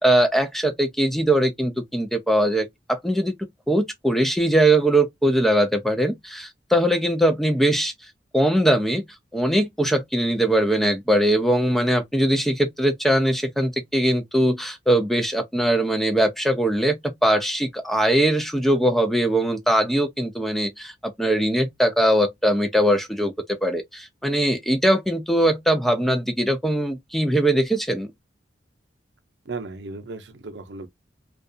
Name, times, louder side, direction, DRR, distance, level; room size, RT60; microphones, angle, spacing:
voice 1, 0.0-3.3 3.7-7.9 8.3-9.0 9.3-23.3 23.6-28.1, right 1 dB, ahead, 0.4 m, -21 dB
voice 2, 29.4-30.9, right 3 dB, 80° right, 0.5 m, -35 dB
2.6 x 2.3 x 2.2 m
head